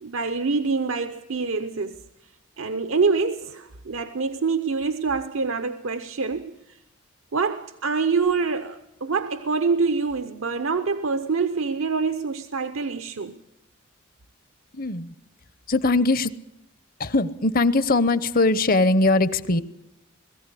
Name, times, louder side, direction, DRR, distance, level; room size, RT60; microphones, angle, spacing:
voice 1, 0.0-2.0 2.6-6.6 7.3-13.4, right 4 dB, 80° right, 0.8 m, -25 dB
voice 2, 14.7-15.1 15.7-16.3 17.0-19.6, left 2 dB, 45° left, 0.8 m, -21 dB
21.0 x 14.5 x 9.8 m
head